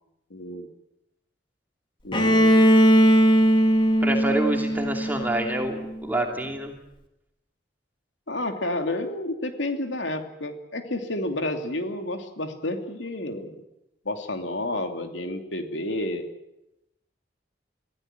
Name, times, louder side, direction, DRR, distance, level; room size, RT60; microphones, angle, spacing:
voice 1, 0.3-0.7 2.0-2.7 8.3-13.6 14.0-16.3, left 1 dB, 85° left, 5 dB, 2.9 m, -30 dB
Bowed string instrument, 2.1-6.0, equal, 25° left, 2.6 m, -19 dB
voice 2, 4.0-6.7, right 1 dB, 10° right, 2 dB, 2.6 m, -27 dB
25.0 x 16.0 x 9.1 m, 0.88 s
head